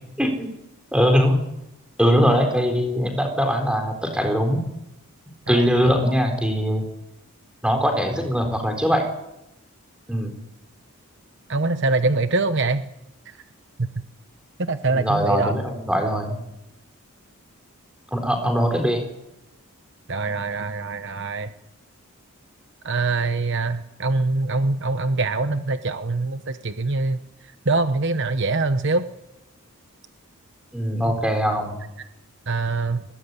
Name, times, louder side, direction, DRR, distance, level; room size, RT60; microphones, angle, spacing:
voice 1, 0.2-0.5 0.9-1.4 2.0-4.6 5.5-6.8 7.6-9.1 10.1-10.4 14.9-16.4 18.1-19.1 30.7-31.8, equal, 5° right, 4 dB, 4.1 m, -21 dB
voice 2, 11.5-12.9 13.8-13.9 14.6-15.5 20.1-21.5 22.8-27.2 27.6-29.0 32.5-33.0, right 3 dB, 55° right, 9 dB, 1.0 m, -23 dB
21.0 x 18.0 x 9.7 m, 0.88 s
head